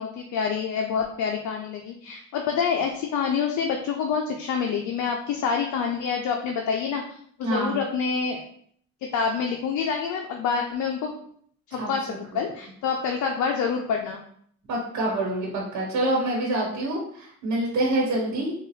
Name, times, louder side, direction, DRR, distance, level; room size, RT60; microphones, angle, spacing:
voice 1, 0.0-7.0 7.4-8.4 9.1-11.1 11.7-12.1 12.3-14.2, left 6 dB, 75° left, 2 dB, 0.5 m, -27 dB
voice 2, 7.4-7.8 11.7-12.5 14.7-18.5, right 1 dB, 70° right, -3 dB, 1.2 m, -27 dB
3.9 x 2.4 x 3.1 m, 0.62 s
cardioid pair, 90°, 30 cm